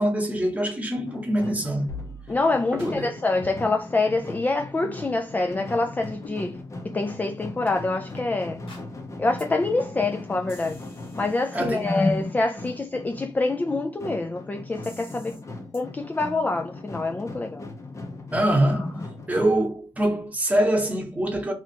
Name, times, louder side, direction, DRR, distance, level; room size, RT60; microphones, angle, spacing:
voice 1, 0.0-1.9 2.7-3.2 11.5-11.9 18.3-18.9 19.3-21.5, right 1 dB, 15° right, 1.1 m, -24 dB
sound 1, 1.1-19.5, left 2 dB, 35° left, 0.7 m, -39 dB
sound 2, 1.9-2.5 2.8-2.9 3.4-3.8 4.1-4.3 4.8-5.0 5.5-5.8 6.2-6.4 7.0-7.1 7.7-7.8 8.2-8.3 8.7-8.9 9.4-9.5 9.8-10.1 10.5-12.3 14.8-15.4 15.7-15.8, left 2 dB, 75° left, 1.4 m, -44 dB
voice 2, 2.3-6.6 6.9-8.6 9.2-10.8 11.2-15.3 15.7-17.6 18.7-18.9, left 3 dB, 20° left, 0.4 m, -26 dB
2.9 x 2.4 x 4.2 m
cardioid pair, 95°, 9 cm